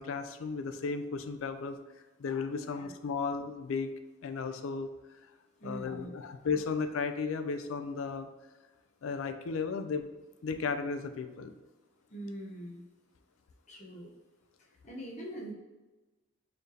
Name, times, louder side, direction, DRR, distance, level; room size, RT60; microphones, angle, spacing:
voice 1, 0.0-1.8 2.2-3.9 4.2-4.9 5.6-8.3 9.0-10.1 10.4-11.5, left 5 dB, 80° left, 9 dB, 0.4 m, -34 dB
voice 2, 5.6-6.1 12.1-12.8 13.7-14.1 14.6-15.5, right 1 dB, 35° left, -2 dB, 0.8 m, -43 dB
4.1 x 3.3 x 2.7 m, 1.2 s
head